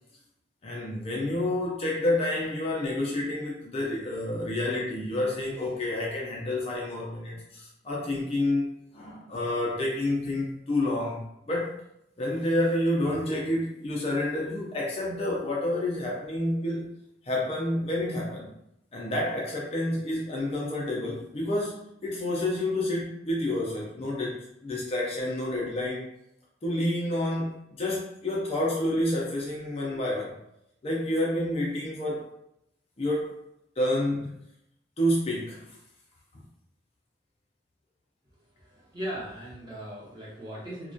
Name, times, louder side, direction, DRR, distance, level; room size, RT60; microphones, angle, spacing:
voice 1, 0.6-11.8 12.2-16.9 17.2-18.5 18.9-26.1 26.6-30.3 30.8-32.2 33.0-33.3 33.8-34.3 35.0-35.6, left 1 dB, 30° left, -3 dB, 0.4 m, -29 dB
voice 2, 38.6-40.9, equal, 20° right, -6 dB, 0.7 m, -38 dB
2.2 x 2.1 x 2.5 m, 0.79 s
head